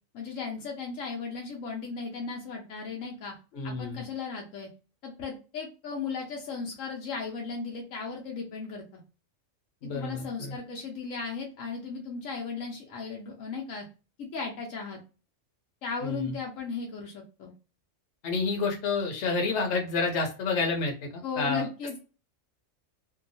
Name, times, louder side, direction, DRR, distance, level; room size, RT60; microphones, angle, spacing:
voice 1, 0.1-3.3 3.6-4.7 5.0-9.0 9.8-13.8 14.3-15.0 15.8-17.5 21.2-22.0, left 5 dB, 85° left, -1 dB, 1.1 m, -36 dB
voice 2, 3.5-4.0 9.8-10.6 16.0-16.3 18.2-21.7, left 4 dB, 65° left, 1 dB, 1.0 m, -29 dB
2.7 x 2.3 x 2.5 m, 0.33 s
omnidirectional pair, 1.3 m